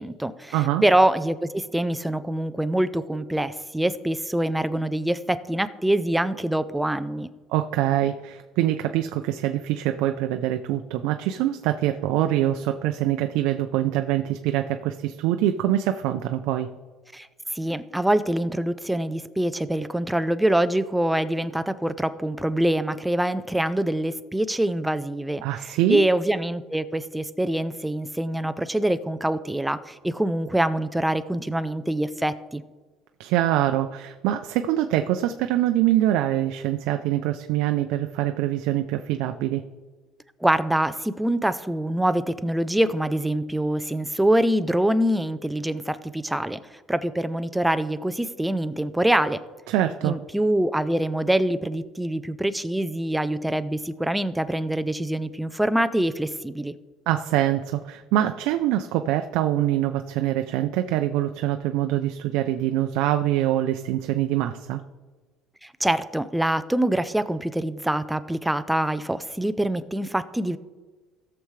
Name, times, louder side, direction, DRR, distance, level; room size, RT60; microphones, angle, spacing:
voice 1, 0.0-7.3 17.1-32.6 40.4-46.6 46.9-49.4 50.0-56.8 65.6-70.6, right 1 dB, 5° right, 12 dB, 0.4 m, -25 dB
voice 2, 0.5-0.8 7.5-16.7 25.4-26.1 33.2-39.6 49.7-50.2 57.1-64.8, right 13 dB, 80° right, 7 dB, 0.5 m, -24 dB
17.5 x 6.8 x 3.2 m, 1.3 s
cardioid pair, 145°, 0 cm